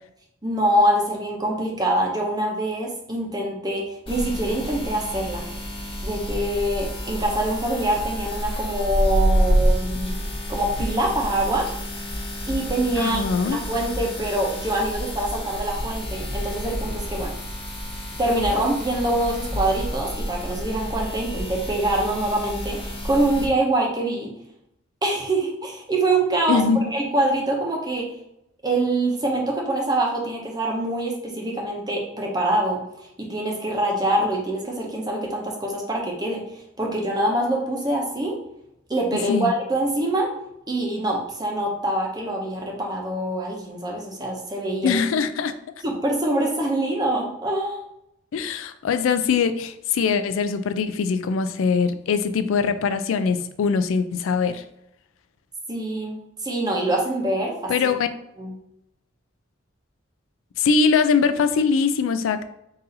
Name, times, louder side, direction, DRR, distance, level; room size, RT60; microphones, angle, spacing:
voice 1, 0.4-5.4 6.0-10.2 10.5-11.7 12.5-13.2 13.5-17.3 18.2-24.3 25.0-26.6 26.9-28.1 28.6-32.8 33.2-38.4 38.9-40.3 40.7-45.0 45.8-47.8 55.7-57.7 58.4-58.5, right 1 dB, 20° right, -1 dB, 0.8 m, -24 dB
sound 1, 4.1-23.5, equal, 25° left, 0.9 m, -28 dB
voice 2, 13.0-13.6 26.5-26.8 39.3-39.5 44.8-45.5 48.3-54.6 57.7-58.1 60.6-62.4, left 5 dB, 90° left, 10 dB, 0.3 m, -22 dB
4.0 x 2.6 x 3.9 m, 0.80 s
head